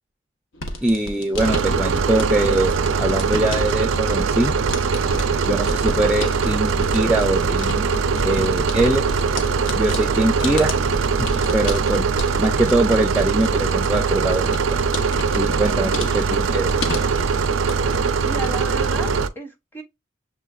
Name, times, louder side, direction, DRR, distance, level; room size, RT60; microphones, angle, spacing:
sound 1, 0.5-18.1 18.3-19.0, left 1 dB, 70° left, 1.0 m, -32 dB
voice 1, 0.8-4.5 5.5-7.9 8.2-9.1 9.7-10.7 11.2-12.1 12.4-14.8 15.3-16.7, right 1 dB, 5° right, 0.5 m, -22 dB
sound 2, 1.4-19.3, right 5 dB, 75° right, 0.5 m, -21 dB
voice 2, 17.5-19.8, right 1 dB, 10° left, 1.0 m, -34 dB
6.5 x 3.2 x 2.4 m
head